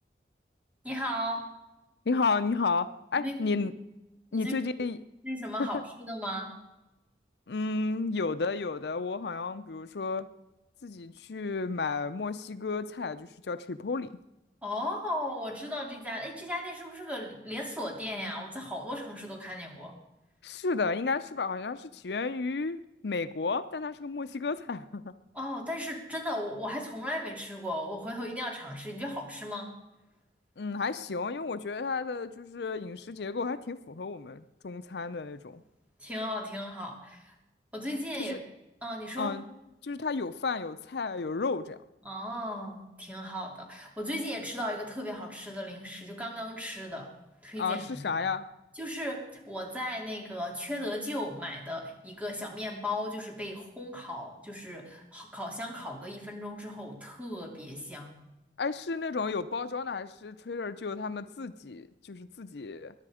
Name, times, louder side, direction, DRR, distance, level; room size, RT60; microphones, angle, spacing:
voice 1, 0.8-1.5 3.1-3.3 4.3-4.7 5.2-6.5 14.6-20.0 25.3-29.7 36.0-37.3 37.7-38.4 38.8-39.3 42.0-47.1 47.4-48.1 48.8-58.1, left 1 dB, 10° right, 0 dB, 2.9 m, -36 dB
voice 2, 2.1-3.7 4.3-5.0 5.6-5.8 7.5-10.3 10.8-14.1 20.4-25.1 30.6-35.6 38.2-38.4 39.2-39.4 39.8-41.8 47.6-48.5 58.6-62.9, left 4 dB, 75° left, 12 dB, 0.6 m, -32 dB
22.0 x 10.5 x 5.0 m, 0.97 s
head